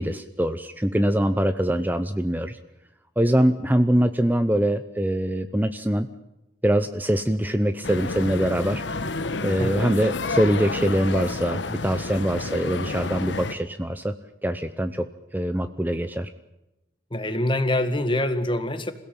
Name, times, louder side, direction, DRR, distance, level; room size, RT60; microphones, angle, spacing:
voice 1, 0.0-2.6 3.2-6.1 6.6-8.8 9.4-14.1 14.4-15.1 15.3-16.3, right 1 dB, 10° right, 10 dB, 0.8 m, -23 dB
sound 1, 7.8-13.5, left 3 dB, 85° left, 1.3 m, -30 dB
voice 2, 17.1-18.9, left 1 dB, 25° left, 10 dB, 1.9 m, -25 dB
27.5 x 17.0 x 8.9 m, 0.95 s
head